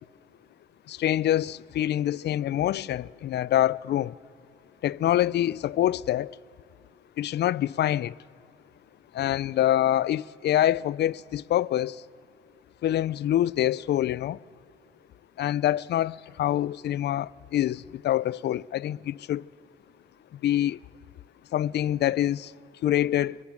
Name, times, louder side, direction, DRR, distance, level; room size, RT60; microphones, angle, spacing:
voice 1, 0.9-4.2 4.8-6.4 7.2-8.2 9.1-12.0 12.8-14.4 15.4-19.5 20.4-20.8 21.5-22.5 22.8-23.4, left 12 dB, 60° left, 0.4 m, -25 dB
23.5 x 20.0 x 7.3 m
cardioid pair, 90°, 20 cm